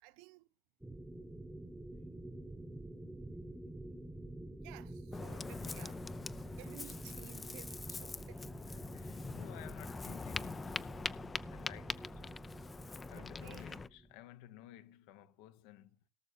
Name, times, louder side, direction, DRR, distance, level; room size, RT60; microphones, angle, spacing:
voice 1, 0.0-0.5 4.6-6.1 6.6-8.5 11.8-11.9 12.9-13.9, right 17 dB, 80° right, 0.5 m, -56 dB
sound 1, 0.8-14.1, right 1 dB, 5° right, 1.2 m, -48 dB
Ocean, 5.1-13.9, left 4 dB, 25° left, 0.6 m, -44 dB
voice 2, 8.9-11.1 11.5-12.5 13.1-16.0, left 14 dB, 80° left, 1.0 m, -55 dB
18.0 x 6.7 x 4.5 m
supercardioid pair, 95°, 0 cm